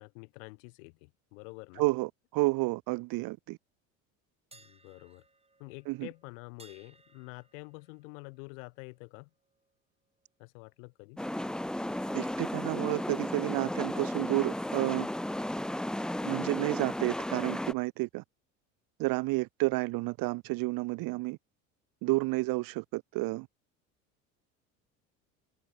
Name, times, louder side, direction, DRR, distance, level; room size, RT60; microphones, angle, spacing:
voice 1, 0.0-1.8 4.5-5.2 5.6-9.3 10.4-11.3, left 32 dB, 70° left, 2.1 m, -48 dB
voice 2, 1.8-3.6 5.9-6.1 12.1-15.1 16.2-18.2 19.0-21.4 22.0-23.5, right 23 dB, 60° right, 1.1 m, -31 dB
sound 1, 4.5-10.4 10.7-11.0 14.4-14.8, right 3 dB, 15° right, 7.7 m, -63 dB
sound 2, 11.2-17.7, left 1 dB, ahead, 0.5 m, -34 dB
hypercardioid pair, 75°, 40 cm